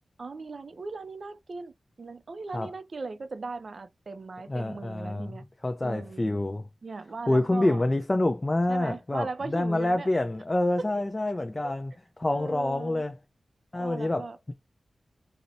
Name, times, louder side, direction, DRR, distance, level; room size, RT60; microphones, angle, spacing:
voice 1, 0.2-1.7 2.0-5.4 5.8-6.4 6.8-7.8 8.7-10.1 10.8-10.9 11.6-11.7 12.3-13.0 13.8-14.4, right 3 dB, 55° right, 0.4 m, -38 dB
voice 2, 4.5-5.3 5.6-6.7 7.3-13.2 13.7-14.5, left 1 dB, 25° left, 0.4 m, -27 dB
2.7 x 2.0 x 2.5 m
wide cardioid pair, 70°, 0 cm